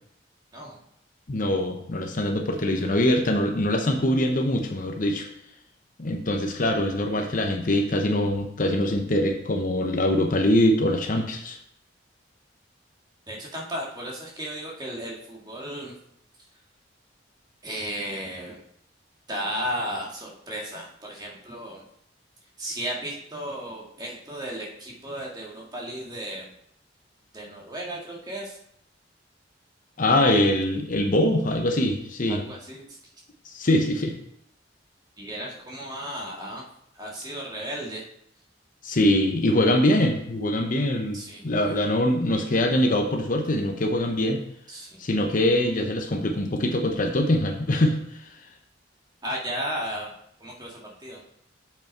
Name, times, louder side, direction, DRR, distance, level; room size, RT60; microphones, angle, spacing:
voice 1, 1.3-5.3 6.0-11.6 30.0-32.4 33.5-34.1 38.8-41.2 41.4-44.4 45.0-48.3, left 1 dB, 45° left, 4 dB, 0.8 m, -23 dB
voice 2, 13.3-15.9 17.6-18.6 19.3-21.8 22.6-26.5 27.3-28.6 32.3-33.0 35.2-36.6 36.9-38.0 41.1-41.8 44.7-45.0 49.2-50.1 50.4-51.2, equal, 20° right, -3 dB, 1.9 m, -34 dB
7.2 x 5.6 x 4.5 m, 0.72 s
head